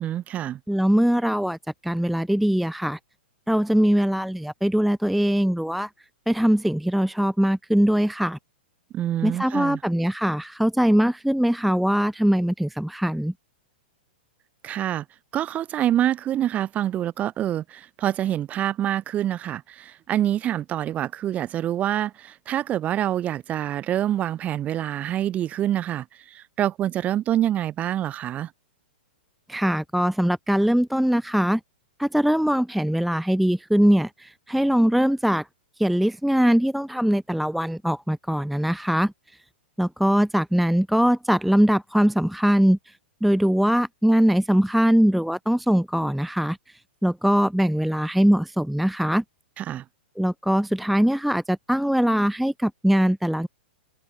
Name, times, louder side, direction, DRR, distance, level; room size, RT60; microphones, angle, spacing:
voice 1, 0.0-0.6 8.9-9.8 14.6-15.0 15.3-28.5 49.6-49.8, right 11 dB, 25° right, 0.9 m, -26 dB
voice 2, 0.7-1.6 1.8-3.0 3.5-5.9 6.3-8.4 9.2-13.3 29.5-31.6 32.0-35.5 35.8-39.1 39.8-42.9 43.2-46.6 47.0-49.2 50.2-53.5, equal, ahead, 0.3 m, -21 dB
hypercardioid pair, 120°, 6 cm